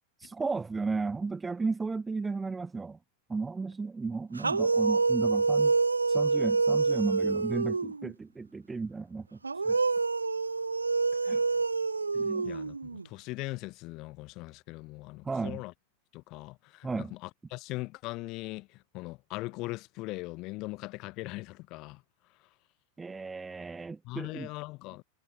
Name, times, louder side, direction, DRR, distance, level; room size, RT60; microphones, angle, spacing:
voice 1, 0.2-3.0 3.3-5.7 6.1-9.4 9.6-9.8 11.3-11.4 12.1-12.5 15.2-15.6 16.8-17.1 23.0-24.5, right 4 dB, 10° right, 0.7 m, -34 dB
sound 1, 4.4-8.1 9.4-13.0, right 4 dB, 80° right, 0.6 m, -27 dB
voice 2, 12.2-15.7 16.1-22.0 24.0-25.0, left 22 dB, 40° left, 2.2 m, -40 dB
figure-of-eight pair, 90°, 0 cm